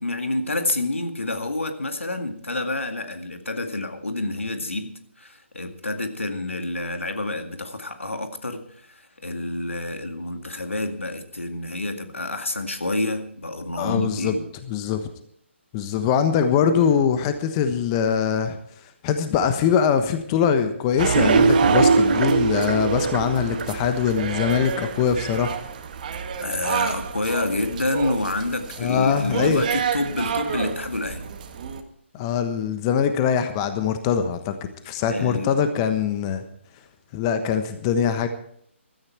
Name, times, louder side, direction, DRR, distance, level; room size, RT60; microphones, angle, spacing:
voice 1, 0.0-14.5 26.4-31.3 35.1-35.6, left 2 dB, 80° left, 7 dB, 2.0 m, -28 dB
voice 2, 13.8-14.3 14.7-15.1 15.7-18.6 19.0-25.6 28.8-29.6 32.1-34.5 34.8-36.4 37.1-38.3, left 7 dB, 25° left, 9 dB, 1.2 m, -22 dB
sound 1, 20.9-24.2 24.5-24.6 25.0-25.1 25.5-25.6, right 4 dB, 60° right, 1.6 m, -21 dB
sound 2, 21.0-31.8, right 7 dB, 40° right, 1.6 m, -28 dB
16.0 x 13.5 x 4.6 m, 0.66 s
figure-of-eight pair, 140°, 7 cm